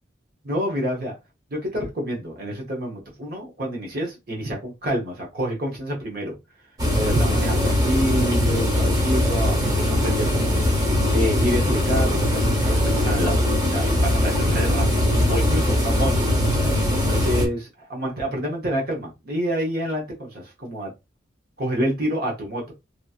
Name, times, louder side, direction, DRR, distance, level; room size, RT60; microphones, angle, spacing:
voice 1, 0.4-1.1 1.5-6.3 6.9-10.7 11.1-13.4 13.7-16.3 16.9-20.9 21.6-22.6, equal, 50° right, -1 dB, 1.0 m, -28 dB
sound 1, 6.8-17.5, left 1 dB, 20° right, 0.8 m, -21 dB
3.0 x 2.7 x 2.4 m, 0.24 s
head